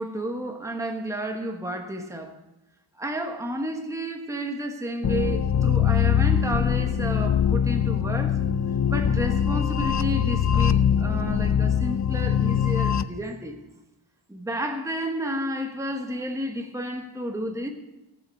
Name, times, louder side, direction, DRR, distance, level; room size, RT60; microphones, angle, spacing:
voice 1, 0.0-2.3 3.0-8.4 8.9-13.6 14.3-17.7, right 1 dB, 5° right, 1.3 m, -31 dB
sound 1, 5.0-13.0, left 8 dB, 40° left, 0.5 m, -22 dB
15.5 x 6.9 x 8.3 m
wide cardioid pair, 130°, 48 cm